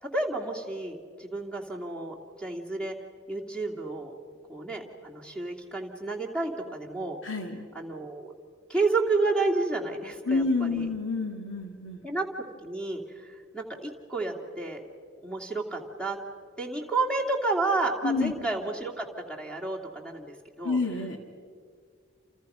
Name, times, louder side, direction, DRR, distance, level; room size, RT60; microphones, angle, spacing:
voice 1, 0.0-2.9 3.3-4.1 4.5-7.2 7.7-8.3 8.7-10.9 12.0-12.2 12.6-14.8 15.2-16.2 16.6-20.8, right 3 dB, 5° left, 2 dB, 2.7 m, -31 dB
voice 2, 7.2-7.6 10.3-12.0 18.0-18.3 20.6-21.2, left 3 dB, 85° left, 4 dB, 2.3 m, -28 dB
29.5 x 28.5 x 5.7 m, 2.1 s
head